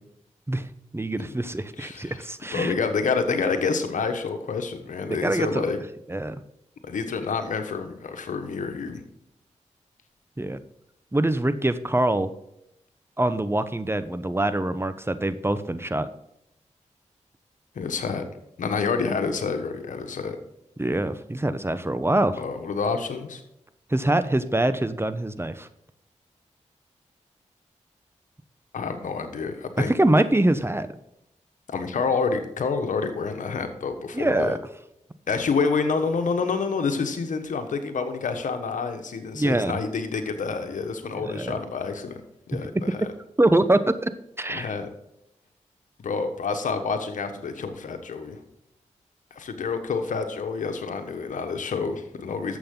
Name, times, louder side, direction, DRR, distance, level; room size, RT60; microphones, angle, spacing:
voice 1, 0.9-2.7 5.1-5.6 6.1-6.4 10.4-10.6 11.1-12.3 13.2-16.1 20.8-22.4 23.9-25.7 29.9-30.9 34.1-34.6 39.3-39.8 41.1-41.6 43.0-43.1 43.4-44.1 44.4-44.7, right 1 dB, 20° right, 12 dB, 1.0 m, -24 dB
voice 2, 1.8-2.2 2.5-5.8 6.8-9.0 17.7-18.2 18.6-20.4 22.4-23.4 28.7-29.9 31.7-34.6 35.3-42.2 42.5-43.1 44.5-44.9 46.0-48.4 49.3-52.6, left 5 dB, 90° left, 7 dB, 1.3 m, -28 dB
11.5 x 7.7 x 3.9 m, 0.82 s
cardioid pair, 50°, 13 cm